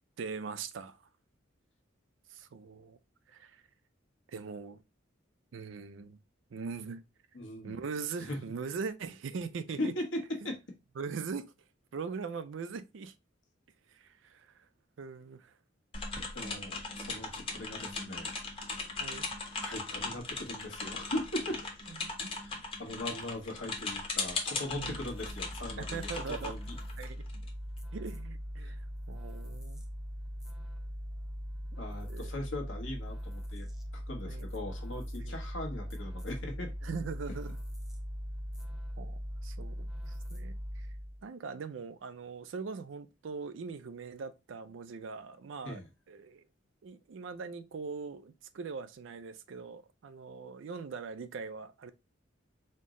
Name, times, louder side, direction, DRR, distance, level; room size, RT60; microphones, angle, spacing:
voice 1, 0.2-1.1 2.3-3.0 3.3-3.6 4.3-4.8 5.5-6.2 6.5-7.0 7.6-9.9 11.0-11.5 11.9-13.1 13.9-14.7 15.0-15.5 19.0-19.3 22.0-22.3 24.7-25.0 25.8-26.6 27.0-27.2 27.9-29.8 32.1-32.3 34.3-34.5 35.2-35.3 36.8-37.6 39.0-40.9 41.2-45.8 46.1-46.4 46.8-51.9, right 5 dB, 70° right, 0.4 m, -41 dB
voice 2, 7.3-7.7 8.2-8.4 9.8-10.6 16.3-18.4 19.6-21.6 22.4-22.5 22.8-26.7 28.6-28.7 31.8-33.7 33.9-36.7 45.6-45.9, left 1 dB, 70° left, 1.1 m, -39 dB
sound 1, 15.9-27.5, left 3 dB, 30° left, 0.8 m, -38 dB
sound 2, 24.7-41.2, equal, 5° right, 0.5 m, -40 dB
4.3 x 2.0 x 3.6 m
head